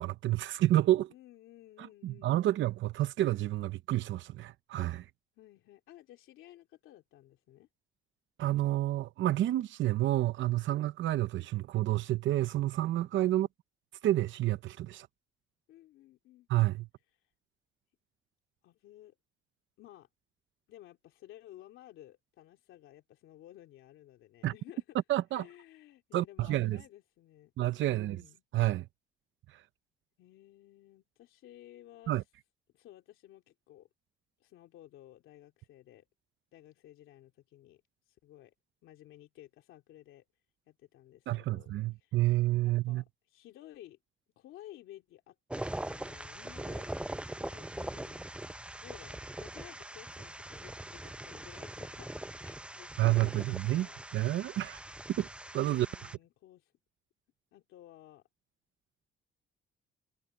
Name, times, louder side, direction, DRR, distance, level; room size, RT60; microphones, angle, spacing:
voice 1, 0.0-1.1 1.8-5.1 8.4-13.5 14.0-15.1 16.5-16.9 24.4-24.5 25.1-25.4 26.1-26.8 27.6-28.2 28.5-28.9 29.5-29.6 32.1-32.2 41.3-43.0 53.0-53.9 54.1-54.8 55.1-55.3 55.5-55.9, right 15 dB, 75° right, 0.7 m, -29 dB
voice 2, 1.1-2.7 5.4-7.7 13.3-13.5 15.7-16.5 18.6-19.1 19.8-20.1 20.7-25.0 25.3-27.5 27.8-28.4 30.2-32.2 32.7-33.9 34.4-36.0 36.5-38.5 38.8-40.2 40.7-41.7 42.0-42.4 42.6-44.0 44.4-46.9 47.4-48.3 48.8-54.0 55.7-56.7 57.5-58.2, left 14 dB, 90° left, 2.9 m, -55 dB
sound 1, 45.5-56.2, right 1 dB, 5° right, 0.7 m, -42 dB
cardioid pair, 90°, 20 cm